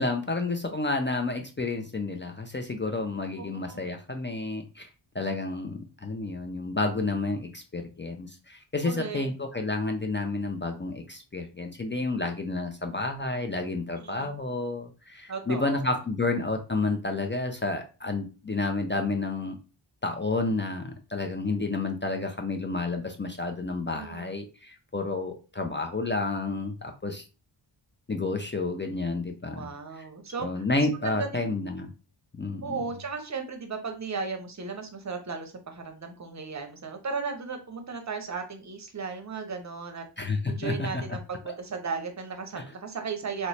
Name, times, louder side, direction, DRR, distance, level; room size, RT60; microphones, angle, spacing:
voice 1, 0.0-4.9 5.1-19.6 20.0-27.2 28.1-29.7 30.0-30.1 30.4-31.9 32.4-32.8 40.2-41.0 41.5-41.6 42.6-42.7, left 3 dB, 25° left, 3 dB, 0.4 m, -30 dB
voice 2, 3.4-3.8 8.8-9.3 14.0-14.3 15.3-16.0 23.9-24.3 29.5-30.6 30.9-31.5 32.6-40.0 40.5-43.5, right 5 dB, 35° right, 5 dB, 0.7 m, -36 dB
3.0 x 2.0 x 4.0 m, 0.33 s
wide cardioid pair, 100°, 49 cm